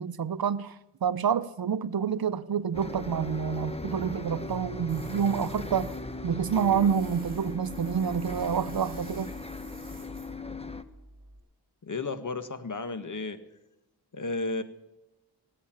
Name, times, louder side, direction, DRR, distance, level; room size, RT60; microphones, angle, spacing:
voice 1, 0.0-6.0 6.2-9.3, right 7 dB, 60° right, 0.8 m, -28 dB
Bus, 2.7-10.8, left 2 dB, 15° left, 1.2 m, -38 dB
Tools, 4.9-11.4, right 1 dB, 20° right, 6.9 m, -49 dB
voice 2, 11.8-13.4 14.1-14.6, left 3 dB, 45° left, 1.7 m, -33 dB
19.0 x 8.6 x 7.4 m
cardioid pair, 55°, 42 cm